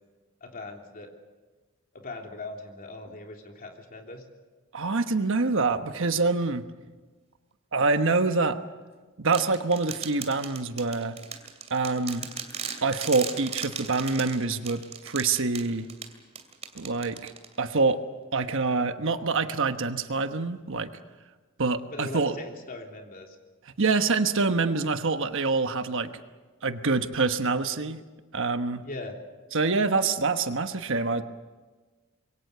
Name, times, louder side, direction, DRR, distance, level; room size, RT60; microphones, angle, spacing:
voice 1, 0.4-1.1 1.9-4.2 21.9-23.4 28.8-29.2, left 2 dB, 40° left, 2 dB, 3.3 m, -40 dB
voice 2, 4.7-6.6 7.7-8.6 9.2-11.2 11.7-12.3 12.8-15.9 16.7-17.3 17.6-18.0 18.3-20.9 21.6-22.3 23.8-26.1 26.6-28.0 28.3-28.8 29.5-31.2, right 3 dB, 60° right, 8 dB, 1.2 m, -26 dB
sound 1, 9.3-17.8, right 6 dB, 30° right, 2.6 m, -38 dB
26.0 x 23.0 x 6.8 m, 1.3 s
head